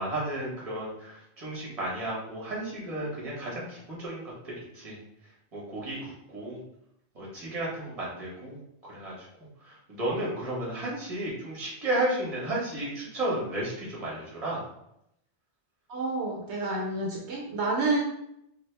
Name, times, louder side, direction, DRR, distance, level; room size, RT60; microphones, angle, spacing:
voice 1, 0.0-5.0 5.5-6.6 7.1-9.3 9.6-14.6, right 1 dB, 35° right, -5 dB, 1.0 m, -33 dB
voice 2, 15.9-18.0, right 2 dB, 75° right, -1 dB, 0.9 m, -29 dB
2.7 x 2.3 x 3.2 m, 0.79 s
omnidirectional pair, 1.2 m